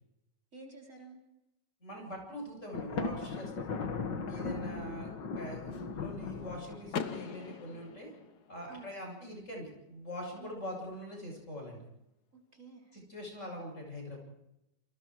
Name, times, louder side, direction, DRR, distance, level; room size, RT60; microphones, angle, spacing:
voice 1, 0.5-1.2 4.4-4.8 8.7-9.0 10.4-10.6 12.3-12.9, right 4 dB, 45° right, 3 dB, 3.9 m, -51 dB
voice 2, 1.8-3.5 4.3-8.1 8.5-11.8 12.9-14.2, equal, 40° left, 0 dB, 8.4 m, -43 dB
Thunder, 2.7-7.3, left 4 dB, 90° left, 2.4 m, -38 dB
Car / Door, 6.9-8.8, left 6 dB, 65° left, 1.7 m, -40 dB
29.0 x 26.0 x 4.8 m, 0.89 s
omnidirectional pair, 1.9 m